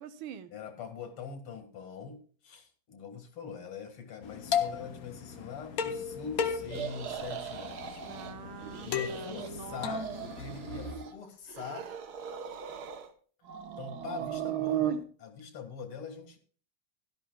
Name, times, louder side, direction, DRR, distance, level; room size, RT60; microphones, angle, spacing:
voice 1, 0.0-0.5 8.0-10.3, right 9 dB, 75° right, 12 dB, 1.5 m, -45 dB
voice 2, 0.5-8.0 8.8-10.1 10.3-11.9 13.8-16.4, left 6 dB, 85° left, 6 dB, 2.6 m, -43 dB
sound 1, 4.2-10.9, left 7 dB, 60° left, 1.0 m, -36 dB
sound 2, 6.7-8.3 8.6-9.5 9.8-11.1 11.5-13.1 13.4-15.0, right 10 dB, 55° right, 1.3 m, -37 dB
17.0 x 12.0 x 2.2 m, 0.41 s
omnidirectional pair, 2.4 m